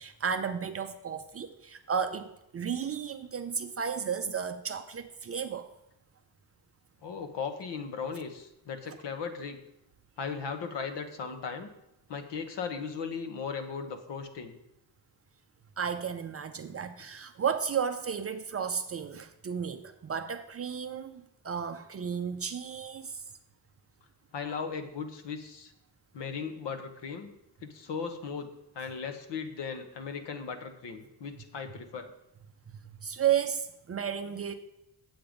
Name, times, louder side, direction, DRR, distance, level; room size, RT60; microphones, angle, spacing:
voice 1, 0.0-5.7 15.8-23.2 24.5-24.6 32.7-34.5, right 7 dB, 35° right, 8 dB, 0.5 m, -33 dB
voice 2, 7.0-9.6 10.2-11.7 12.1-14.6 24.3-25.7 26.1-27.3 27.6-28.5 28.7-32.1, left 5 dB, 65° left, 8 dB, 1.2 m, -37 dB
8.8 x 7.9 x 5.1 m, 0.85 s
wide cardioid pair, 165°, 45 cm